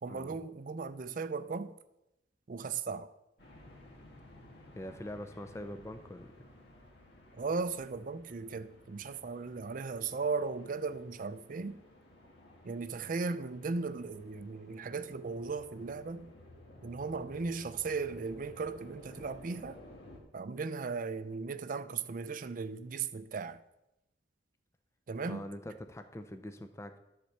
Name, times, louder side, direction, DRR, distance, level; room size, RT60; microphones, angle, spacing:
voice 1, 0.0-1.7 2.5-3.1 7.4-11.8 12.6-16.3 16.8-19.8 20.3-23.6 25.1-25.5, right 4 dB, 50° right, 0.4 m, -37 dB
sound 1, 3.4-20.2, left 1 dB, 60° left, 1.9 m, -55 dB
voice 2, 4.8-6.3 25.3-27.0, left 1 dB, 15° left, 0.5 m, -43 dB
11.5 x 4.4 x 6.6 m
head